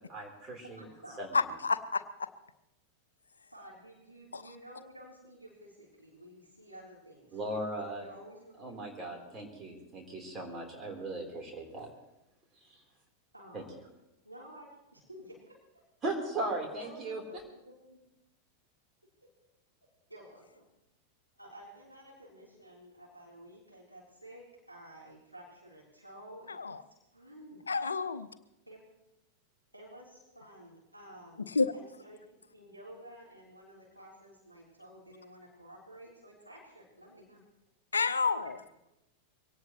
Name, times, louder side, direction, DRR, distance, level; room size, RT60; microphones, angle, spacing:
voice 1, 0.0-0.8 1.2-1.3 7.3-8.1 8.6-11.9 13.5-13.6 16.0-17.2, right 2 dB, 25° right, 1 dB, 4.0 m, -37 dB
voice 2, 0.6-1.6 3.5-7.7 8.0-8.8 13.3-13.7 14.2-15.8 16.7-18.0 19.2-19.3 20.1-20.7 21.4-26.6 26.9-27.6 28.7-28.8 29.7-37.4 38.4-38.5, right 1 dB, 85° right, -4 dB, 3.8 m, -52 dB
voice 3, 1.3-2.3 4.3-4.4 26.5-26.8 27.7-28.3 31.5-31.7 37.9-38.6, left 4 dB, 75° left, 13 dB, 0.7 m, -29 dB
23.5 x 18.0 x 3.2 m, 0.91 s
figure-of-eight pair, 90°, 0 cm